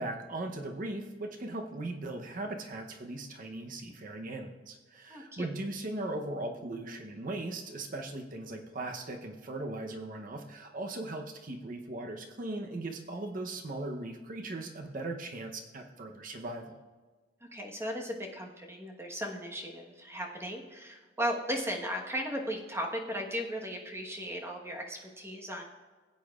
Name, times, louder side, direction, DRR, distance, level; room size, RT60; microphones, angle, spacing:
voice 1, 0.0-16.8, right 2 dB, 50° right, 3 dB, 0.8 m, -38 dB
voice 2, 5.1-5.5 17.5-25.6, equal, 15° right, 0 dB, 1.3 m, -36 dB
16.5 x 8.5 x 2.4 m, 1.3 s
head